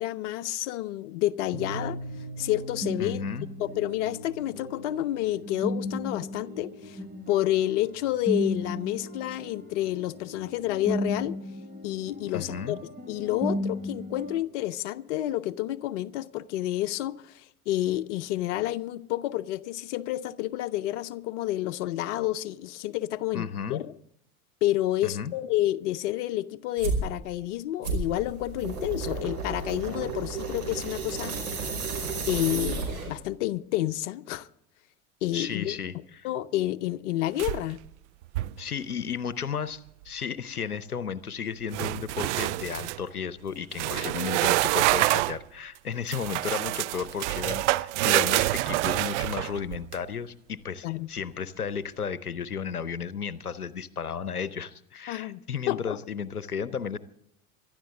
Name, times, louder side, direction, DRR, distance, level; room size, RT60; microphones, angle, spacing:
voice 1, 0.0-2.0 2.4-3.2 3.6-7.0 7.3-11.4 11.8-23.9 24.6-31.4 32.3-34.5 35.2-35.8 36.2-37.8 43.9-44.1 50.8-51.1 55.1-55.4 55.7-56.0, left 14 dB, 55° left, 0.7 m, -29 dB
sound 1, 1.5-14.4, equal, 20° right, 2.7 m, -35 dB
voice 2, 3.0-3.5 12.3-12.8 23.3-23.8 25.0-25.3 35.3-36.3 38.6-57.0, left 7 dB, 85° left, 0.8 m, -34 dB
sound 2, 26.8-27.1 27.8-33.3, right 4 dB, 80° right, 5.1 m, -32 dB
sound 3, 37.4-37.9 38.2-38.6 41.7-43.0 43.7-45.4 46.1-50.0, right 18 dB, 55° right, 0.5 m, -26 dB
24.5 x 12.0 x 3.6 m
figure-of-eight pair, 75°, 44 cm